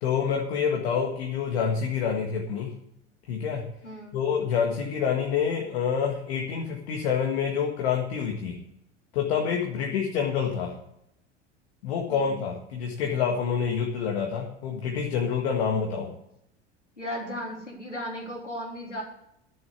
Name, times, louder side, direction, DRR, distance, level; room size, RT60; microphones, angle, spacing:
voice 1, 0.0-2.7 3.3-3.7 4.1-8.6 9.1-10.7 11.8-16.1, left 7 dB, 60° left, 1 dB, 1.9 m, -27 dB
voice 2, 3.8-4.2 9.7-9.9 12.1-12.4 17.0-19.0, equal, 90° left, -2 dB, 3.6 m, -36 dB
11.5 x 6.9 x 8.2 m, 0.78 s
figure-of-eight pair, 80°, 35 cm